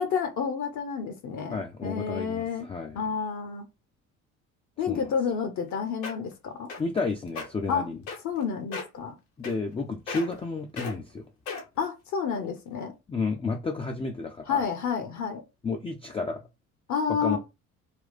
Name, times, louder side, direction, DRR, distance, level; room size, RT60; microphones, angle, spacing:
voice 1, 0.0-2.7 2.9-3.7 4.8-6.7 7.7-7.9 8.2-9.1 11.8-12.9 14.5-15.4 16.9-17.4, left 6 dB, 45° left, 0.8 m, -30 dB
voice 2, 1.5-3.1 4.9-5.1 6.8-8.0 9.4-11.2 13.1-14.6 15.6-16.4 17.1-17.4, left 4 dB, 15° left, 0.5 m, -31 dB
sound 1, 5.7-5.8 6.0-6.3 6.7-7.0 7.3-7.5 8.1-8.4 8.7-9.0 9.4-9.8 10.1-10.4 10.8-10.9 11.5-11.8 12.4-12.5, left 4 dB, 70° left, 1.2 m, -35 dB
3.6 x 2.4 x 4.0 m
figure-of-eight pair, 55°, 43 cm